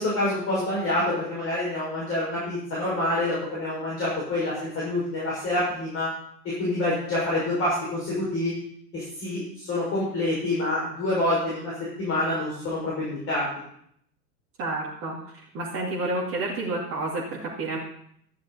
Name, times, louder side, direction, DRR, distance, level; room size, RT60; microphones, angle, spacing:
voice 1, 0.0-6.1 6.4-8.5 8.9-11.7 12.0-13.5, left 1 dB, 25° left, -7 dB, 6.1 m, -27 dB
voice 2, 14.6-15.2 15.5-17.8, right 2 dB, 25° right, -4 dB, 2.4 m, -29 dB
13.0 x 11.0 x 4.3 m, 0.69 s
figure-of-eight pair, 100°, 48 cm